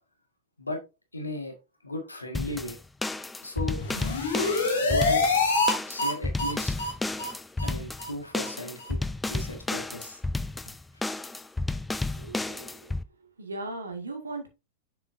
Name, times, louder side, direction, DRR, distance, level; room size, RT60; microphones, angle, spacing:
voice 1, 1.1-1.5 1.8-2.8 3.4-3.8 4.8-5.2 5.8-6.8 7.6-10.2, left 1 dB, 80° left, 5 dB, 1.6 m, -36 dB
sound 1, 2.3-13.0, left 2 dB, 10° left, 0.5 m, -32 dB
sound 2, 3.7-5.7 6.0-6.1 6.4-6.5 6.8-6.9 7.2-7.3 7.6-7.7 8.0-8.1 8.4-8.5 8.8-8.9, left 3 dB, 65° left, 2.2 m, -25 dB
voice 2, 12.2-12.9 13.4-14.5, right 2 dB, 75° right, 4 dB, 2.0 m, -38 dB
7.0 x 6.9 x 2.6 m, 0.27 s
figure-of-eight pair, 90°, 0 cm